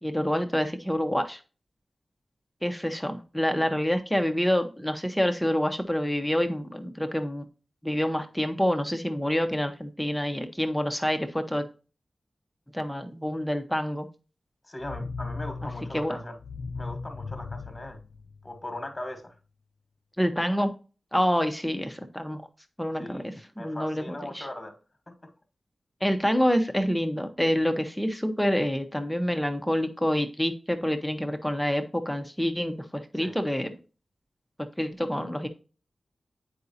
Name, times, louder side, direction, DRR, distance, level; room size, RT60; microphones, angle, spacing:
voice 1, 0.0-1.4 2.6-7.4 7.8-11.7 12.7-14.1 15.9-16.2 20.2-20.7 21.1-22.4 22.8-24.5 26.0-32.7 33.1-33.7 34.8-35.5, equal, 5° left, 6 dB, 0.7 m, -27 dB
voice 2, 14.7-16.4 16.7-18.0 18.4-19.3 23.0-23.3 23.6-24.8 25.1-25.3 33.1-33.5, left 1 dB, 20° left, 6 dB, 1.3 m, -39 dB
sound 1, 14.8-18.8, left 4 dB, 85° left, 0.3 m, -38 dB
8.2 x 4.8 x 2.7 m, 0.35 s
wide cardioid pair, 80°, 0 cm